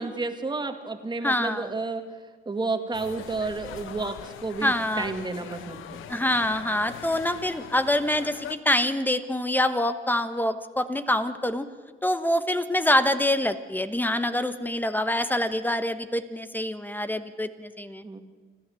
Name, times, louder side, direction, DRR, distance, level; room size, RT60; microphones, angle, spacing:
voice 1, 0.0-2.0 2.5-6.2 18.0-18.2, right 3 dB, 20° right, 6 dB, 2.0 m, -31 dB
voice 2, 1.2-1.7 4.6-5.1 6.1-11.7 12.0-18.0, left 1 dB, 10° left, 11 dB, 1.1 m, -25 dB
sound 1, 2.9-8.6, left 10 dB, 85° left, 1.0 m, -42 dB
29.5 x 12.0 x 7.7 m, 1.4 s
cardioid pair, 90°, 20 cm